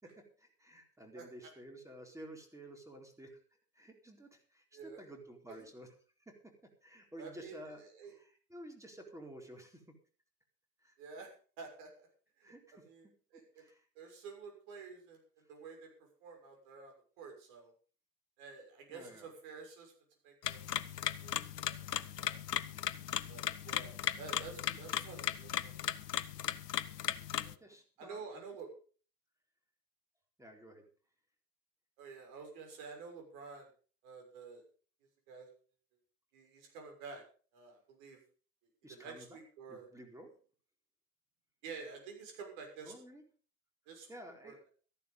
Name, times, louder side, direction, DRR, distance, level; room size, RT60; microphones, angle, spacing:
voice 1, 0.0-3.4 3.7-5.9 6.2-9.8 10.8-10.9 12.4-12.9 13.3-13.9 18.9-19.3 27.1-28.5 30.4-30.8 38.8-39.4 39.7-40.4 42.8-43.2 44.1-44.7, right 1 dB, 5° right, 3 dB, 4.1 m, -52 dB
voice 2, 7.2-7.5 7.8-8.1 11.0-11.3 11.6-11.9 12.4-12.5 12.8-13.0 13.3-13.6 13.9-15.9 16.2-17.7 18.4-19.9 20.2-20.6 21.2-21.4 21.7-22.4 23.3-25.7 26.9-27.0 27.4-27.6 28.0-28.7 32.0-33.7 34.0-34.6 35.3-35.5 36.3-37.2 37.5-38.2 38.9-39.9 41.6-42.9 43.9-44.1 44.4-44.5, right 5 dB, 55° right, 2 dB, 6.5 m, -50 dB
Old alarm clock ticking, 20.4-27.5, left 10 dB, 80° left, 0.8 m, -37 dB
14.0 x 11.0 x 5.5 m, 0.40 s
figure-of-eight pair, 80°, 47 cm